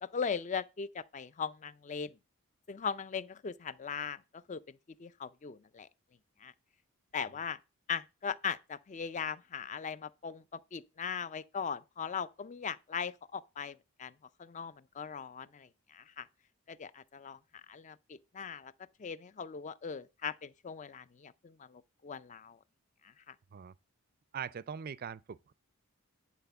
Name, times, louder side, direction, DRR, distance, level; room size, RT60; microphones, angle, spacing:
voice 1, 0.0-2.1 2.7-4.2 4.5-4.6 5.0-5.9 6.4-6.5 7.1-7.6 7.9-14.1 14.4-16.3 16.7-17.4 17.7-18.7 19.0-22.6 23.0-23.3, left 6 dB, 30° left, 0.4 m, -39 dB
voice 2, 24.3-25.5, right 7 dB, 40° right, 0.4 m, -41 dB
10.5 x 4.2 x 6.8 m
head